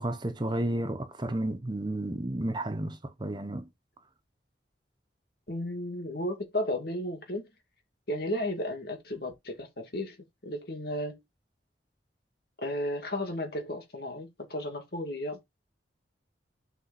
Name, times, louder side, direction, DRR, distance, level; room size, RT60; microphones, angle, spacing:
voice 1, 0.0-3.7, right 1 dB, 25° right, 0.9 m, -32 dB
voice 2, 5.5-7.5 8.1-10.2 10.4-11.2 12.6-15.4, left 1 dB, 60° left, 2.2 m, -34 dB
7.2 x 4.2 x 4.1 m
head